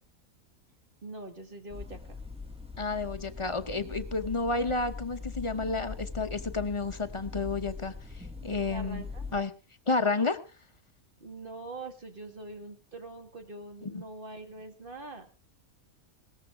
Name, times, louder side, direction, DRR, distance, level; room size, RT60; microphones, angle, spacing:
voice 1, 1.0-2.2 8.7-9.3 11.2-15.3, right 2 dB, 35° right, 5 dB, 2.0 m, -43 dB
sound 1, 1.7-9.4, left 4 dB, 5° right, 1.4 m, -41 dB
voice 2, 2.8-9.1 9.3-9.5 9.9-10.4 13.8-14.0, left 3 dB, 30° left, 8 dB, 0.6 m, -31 dB
18.0 x 14.0 x 3.5 m, 0.33 s
omnidirectional pair, 1.5 m